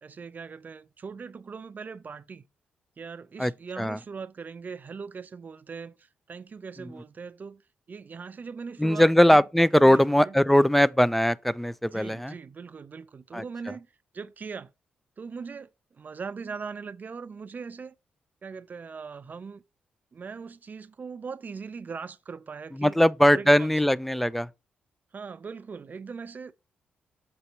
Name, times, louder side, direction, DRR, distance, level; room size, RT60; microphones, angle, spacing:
voice 1, 0.0-2.4 3.0-6.0 6.3-7.6 7.9-9.4 9.8-10.4 11.9-13.9 14.1-14.7 15.2-15.7 16.0-17.9 18.4-19.6 20.1-23.0 23.3-23.7 25.1-26.5, right 5 dB, 45° right, 0.5 m, -40 dB
voice 2, 8.8-12.3 13.3-13.7 22.7-24.5, equal, 5° left, 0.4 m, -21 dB
6.9 x 2.8 x 5.4 m
supercardioid pair, 55°, 4 cm